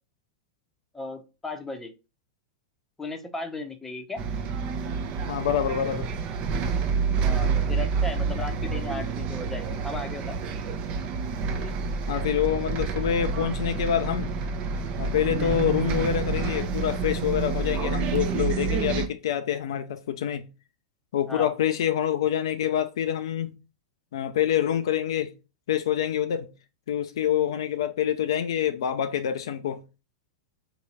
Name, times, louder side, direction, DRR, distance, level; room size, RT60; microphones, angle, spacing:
voice 1, 0.9-1.9 3.0-4.2 7.2-10.4 11.5-11.8 15.3-15.6 21.3-21.5, left 2 dB, 10° left, 0.8 m, -36 dB
Bus, 4.2-19.1, right 5 dB, 40° right, 0.7 m, -28 dB
voice 2, 5.3-6.1 12.1-14.3 15.0-20.5 21.1-23.5 24.1-25.3 25.7-26.5 26.9-29.8, left 10 dB, 65° left, 0.4 m, -26 dB
3.6 x 2.9 x 4.1 m
figure-of-eight pair, 95°, 3 cm